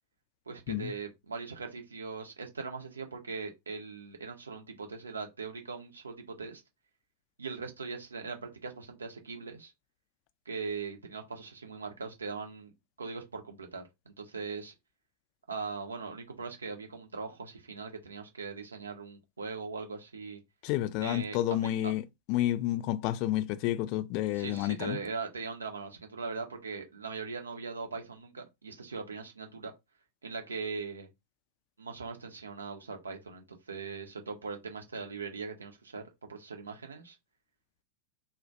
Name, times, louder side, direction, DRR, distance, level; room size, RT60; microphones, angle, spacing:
voice 1, 0.5-6.6 7.4-9.7 10.5-12.7 13.0-14.7 15.5-20.4 21.0-21.4 21.8-21.9 24.3-29.7 30.2-31.1 31.8-36.0 36.3-37.2, right 4 dB, 75° right, 0.6 m, -40 dB
voice 2, 20.6-22.0 22.3-25.0, left 14 dB, 45° left, 0.3 m, -30 dB
2.1 x 2.1 x 2.7 m
figure-of-eight pair, 90°, 0 cm